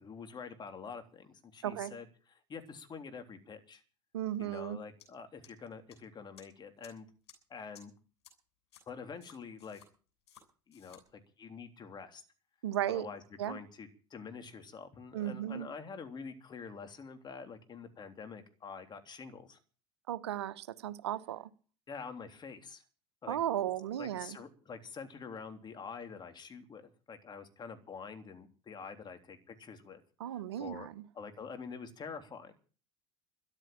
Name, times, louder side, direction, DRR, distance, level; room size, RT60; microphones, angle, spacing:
voice 1, 0.0-2.0 2.5-3.8 4.4-7.1 7.5-7.9 8.9-9.8 10.7-12.2 12.9-19.6 21.9-22.8 23.2-23.4 24.0-30.0 30.6-30.9 31.1-32.5, left 5 dB, 30° left, 7 dB, 3.4 m, -46 dB
voice 2, 4.1-4.8 12.6-13.1 13.4-13.6 15.1-15.7 20.1-21.5 23.3-24.4 30.2-31.0, right 12 dB, 80° right, 16 dB, 0.9 m, -35 dB
sound 1, 5.0-5.1 5.4-5.9 6.4-6.5 6.8-6.9 7.3-7.4 7.7-7.8 8.2-8.3 8.7-8.8 9.2-9.9 10.3-10.4 10.7-11.0, left 8 dB, 75° left, 7.7 m, -56 dB
13.5 x 11.0 x 8.8 m, 0.39 s
hypercardioid pair, 75°, 14 cm